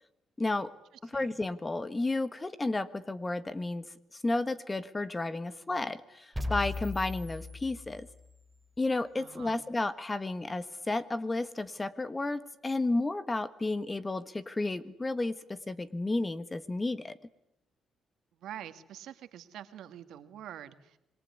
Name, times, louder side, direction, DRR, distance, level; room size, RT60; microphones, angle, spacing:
voice 1, 0.4-0.7 1.1-3.8 4.2-8.1 8.8-17.2, left 2 dB, 20° left, 14 dB, 1.4 m, -32 dB
sound 1, 6.3-8.4, left 2 dB, 10° right, 2.9 m, -37 dB
voice 2, 9.2-9.6 18.3-21.0, right 11 dB, 80° right, 10 dB, 2.0 m, -46 dB
26.5 x 21.5 x 9.7 m, 0.84 s
cardioid pair, 90°, 0 cm